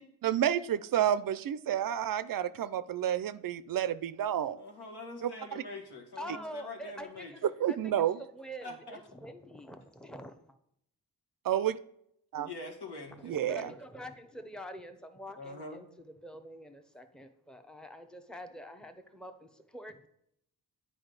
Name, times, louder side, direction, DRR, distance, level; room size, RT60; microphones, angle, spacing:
voice 1, 0.2-4.6 5.2-5.3 7.6-8.2 11.4-11.8 12.3-12.5 13.2-13.7, right 10 dB, 55° right, 15 dB, 0.5 m, -30 dB
voice 2, 4.5-7.5 8.6-9.0 12.5-13.7 15.3-15.8, left 2 dB, 70° left, 2 dB, 1.7 m, -44 dB
voice 3, 6.2-8.0 8.3-10.4 13.3-15.9 16.2-20.1, equal, ahead, 7 dB, 0.9 m, -46 dB
8.7 x 4.7 x 3.9 m, 0.74 s
supercardioid pair, 45°, 40 cm